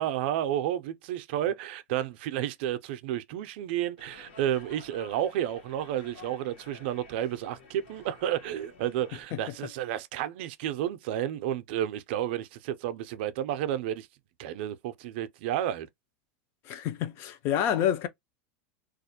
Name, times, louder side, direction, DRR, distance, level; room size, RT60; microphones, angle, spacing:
voice 1, 0.0-14.1 14.4-15.9, right 11 dB, 60° right, 0.4 m, -31 dB
sound 1, 4.0-9.2, left 4 dB, 70° left, 1.1 m, -52 dB
voice 2, 16.6-18.1, left 10 dB, 40° left, 0.3 m, -28 dB
2.3 x 2.1 x 2.7 m
supercardioid pair, 150°, 6 cm